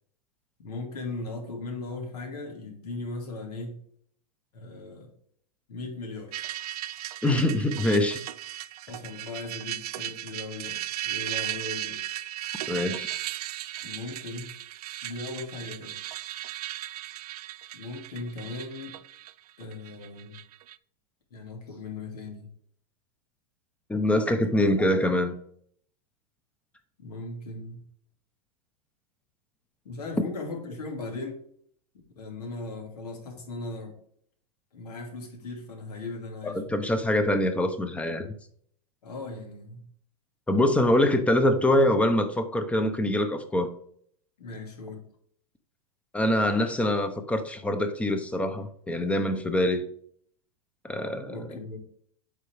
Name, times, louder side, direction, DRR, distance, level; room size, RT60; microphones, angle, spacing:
voice 1, 0.6-3.8 4.5-5.1 5.7-6.3 8.9-12.0 13.8-14.5 15.0-16.0 17.7-19.0 19.6-20.4 21.3-22.5 24.5-24.7 27.0-27.8 29.8-31.4 32.2-34.0 34.7-36.7 39.0-39.9 44.4-45.1 51.3-51.8, left 3 dB, 85° left, 2.4 m, -38 dB
sound 1, 6.3-20.8, right 13 dB, 75° right, 0.4 m, -36 dB
voice 2, 7.2-8.2 12.7-13.1 23.9-25.3 36.4-38.3 40.5-43.7 46.1-49.9 50.8-51.5, left 1 dB, 5° left, 0.7 m, -24 dB
8.3 x 4.4 x 3.4 m
hypercardioid pair, 130°, 20 cm